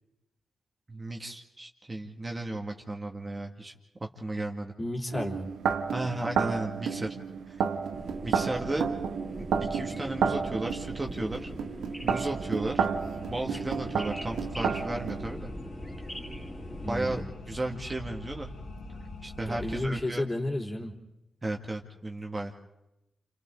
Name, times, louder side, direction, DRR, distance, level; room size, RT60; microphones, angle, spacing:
voice 1, 0.9-3.7 4.1-4.7 5.9-7.1 7.5-7.6 8.2-8.9 9.4-11.5 12.0-12.9 13.3-15.5 16.9-17.2 17.5-18.5 19.2-20.3 21.4-22.5, right 2 dB, 30° right, 2 dB, 2.2 m, -34 dB
voice 2, 4.8-5.5 16.8-17.3 19.4-21.0, left 1 dB, 25° left, 0 dB, 3.3 m, -32 dB
sound 1, 5.1-15.2, right 6 dB, 85° right, 1.0 m, -31 dB
sound 2, 7.9-17.2, equal, 10° left, 3.3 m, -42 dB
sound 3, 13.0-19.9, left 2 dB, 85° left, 2.4 m, -44 dB
29.0 x 27.5 x 4.0 m, 0.91 s
cardioid pair, 55°, 0 cm